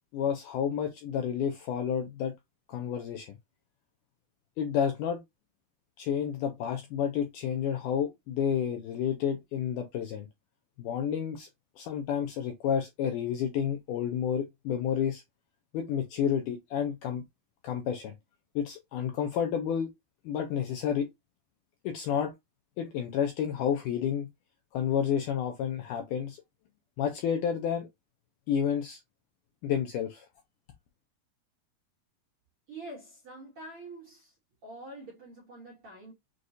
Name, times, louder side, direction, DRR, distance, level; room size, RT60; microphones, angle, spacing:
voice 1, 0.1-2.3 2.7-3.3 4.6-5.2 6.0-10.3 10.8-11.5 11.8-15.2 15.7-17.2 17.6-18.1 18.6-19.9 20.3-21.1 21.8-22.3 22.8-24.3 24.7-26.4 27.0-27.9 28.5-29.0 29.6-30.3, left 8 dB, 80° left, 1.8 m, -30 dB
voice 2, 32.7-34.3 34.6-36.1, right 2 dB, 75° right, 1.3 m, -45 dB
6.3 x 2.4 x 2.6 m
omnidirectional pair, 4.3 m